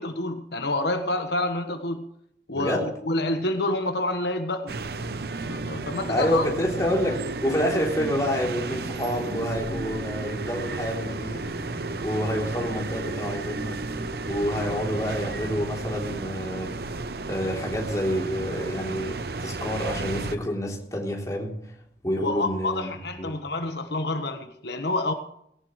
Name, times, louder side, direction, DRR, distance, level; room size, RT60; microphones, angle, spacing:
voice 1, 0.0-2.0 2.5-4.7 5.5-6.5 22.2-25.1, left 2 dB, 75° left, 1.4 m, -28 dB
voice 2, 2.5-2.9 6.1-11.5 11.8-13.8 14.3-16.7 17.3-21.5 22.0-22.9 23.2-23.3, equal, 20° left, 3.4 m, -28 dB
sound 1, 4.7-20.4, right 3 dB, 60° right, 0.7 m, -33 dB
sound 2, 9.5-16.4 16.8-17.9, equal, 85° right, 6.6 m, -43 dB
18.5 x 17.5 x 3.2 m
head